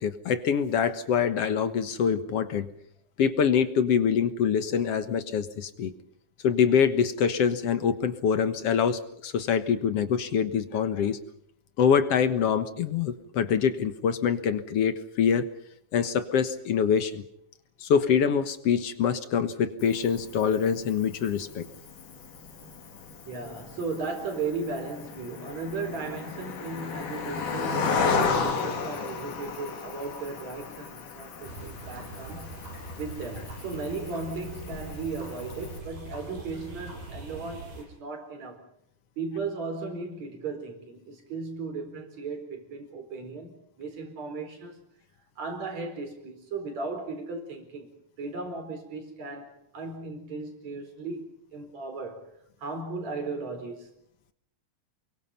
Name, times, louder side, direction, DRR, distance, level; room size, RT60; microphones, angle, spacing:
voice 1, 0.0-2.7 3.2-5.9 6.4-11.2 11.8-15.5 15.9-17.2 17.8-21.6, left 7 dB, 60° left, 2.0 m, -25 dB
Cricket, 19.8-35.8, left 5 dB, 80° left, 4.0 m, -34 dB
voice 2, 23.3-32.7 33.0-38.6 39.2-44.8 45.4-47.9 48.2-52.3 52.6-53.9, right 4 dB, 60° right, 5.6 m, -36 dB
sound 1, 31.4-37.8, right 2 dB, 90° right, 8.0 m, -42 dB
29.0 x 23.0 x 5.6 m
omnidirectional pair, 3.6 m